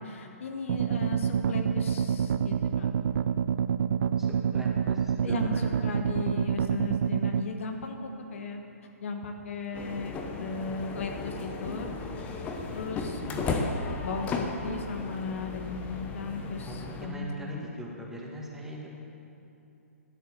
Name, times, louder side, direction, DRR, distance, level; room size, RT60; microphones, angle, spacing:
voice 1, 0.0-2.9 5.2-8.6 9.0-11.9 12.7-13.2 13.5-13.7 14.0-17.5, left 4 dB, 55° left, 3 dB, 1.3 m, -36 dB
sound 1, 0.7-7.4, right 7 dB, 50° right, 0.4 m, -27 dB
voice 2, 4.2-5.6 5.9-6.0 12.7-12.8 13.1-13.4 16.7-18.9, equal, 5° right, -3 dB, 2.0 m, -41 dB
sound 2, 9.7-17.1, left 3 dB, 20° left, 1.1 m, -35 dB
12.0 x 9.5 x 6.6 m, 2.9 s
figure-of-eight pair, 130°, 8 cm